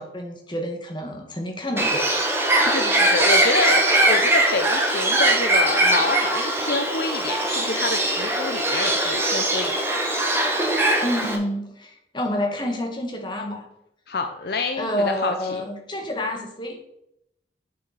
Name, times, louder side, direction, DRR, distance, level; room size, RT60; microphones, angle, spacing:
voice 1, 0.0-2.0 11.0-13.6 14.8-16.9, left 1 dB, 25° left, 2 dB, 1.6 m, -28 dB
Bird, 1.8-11.4, right 1 dB, 15° right, 1.3 m, -21 dB
voice 2, 2.6-9.8 14.1-15.6, left 3 dB, 60° left, 6 dB, 0.6 m, -27 dB
7.7 x 6.9 x 4.1 m, 0.79 s
head